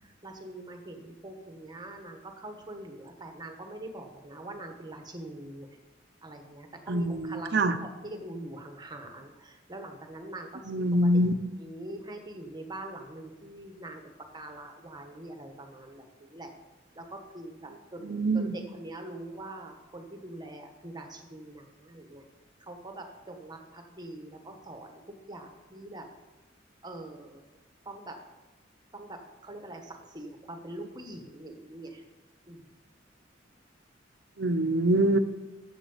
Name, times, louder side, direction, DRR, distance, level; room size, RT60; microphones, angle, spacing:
voice 1, 0.0-5.7 6.2-7.5 7.8-11.1 11.6-16.5 16.9-18.2 18.5-22.2 22.6-25.0 25.3-26.1 26.8-27.4 27.8-28.2 28.9-32.0 32.5-32.7, right 1 dB, 20° right, 4 dB, 1.2 m, -43 dB
voice 2, 6.9-7.8 10.7-11.3 18.0-18.5 34.4-35.2, right 1 dB, 60° right, 9 dB, 0.7 m, -25 dB
7.4 x 7.3 x 7.1 m, 1.1 s
head